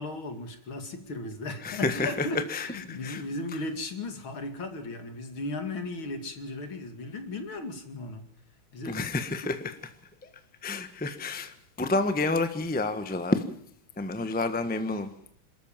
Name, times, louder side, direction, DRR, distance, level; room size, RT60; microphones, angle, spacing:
voice 1, 0.0-8.2 8.7-9.0, left 2 dB, 65° left, 7 dB, 3.2 m, -36 dB
voice 2, 1.6-3.2 8.8-9.7 10.2-10.3 10.6-13.4 14.0-15.1, left 3 dB, 5° left, 9 dB, 1.0 m, -29 dB
27.5 x 13.5 x 7.5 m, 0.64 s
omnidirectional pair, 2.4 m